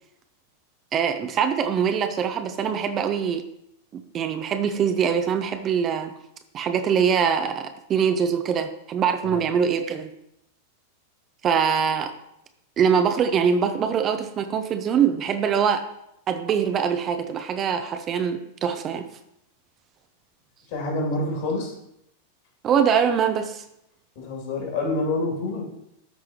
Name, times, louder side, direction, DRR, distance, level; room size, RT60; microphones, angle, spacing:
voice 1, 0.9-3.4 3.9-6.1 6.5-10.1 11.4-12.1 12.8-15.8 16.3-19.1 22.6-23.6, right 7 dB, 30° right, 7 dB, 0.6 m, -23 dB
voice 2, 20.7-21.7 24.1-25.6, left 2 dB, 50° left, 0 dB, 2.8 m, -27 dB
13.5 x 4.7 x 3.0 m, 0.79 s
figure-of-eight pair, 90°, 0 cm